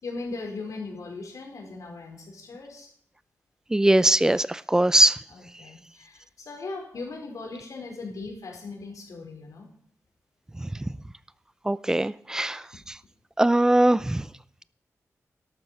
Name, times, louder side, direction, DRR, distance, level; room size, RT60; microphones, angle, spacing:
voice 1, 0.0-2.9 5.3-9.7, left 3 dB, 70° left, 4.5 m, -38 dB
voice 2, 3.7-5.2 10.6-10.7 11.7-12.6 13.4-14.2, right 1 dB, 10° right, 0.5 m, -21 dB
13.0 x 12.0 x 5.6 m
wide cardioid pair, 135°, 6 cm